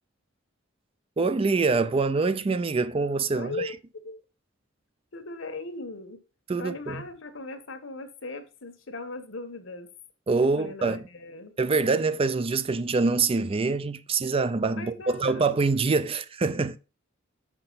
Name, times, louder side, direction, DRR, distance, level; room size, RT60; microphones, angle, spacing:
voice 1, 1.2-3.7 6.5-7.0 10.3-11.0 11.6-16.8, right 4 dB, 30° right, 0.4 m, -25 dB
voice 2, 3.3-3.7 4.0-4.2 5.1-6.2 6.6-9.9 10.4-11.6 14.8-15.5, left 2 dB, 75° left, 1.3 m, -38 dB
6.6 x 5.9 x 4.0 m
head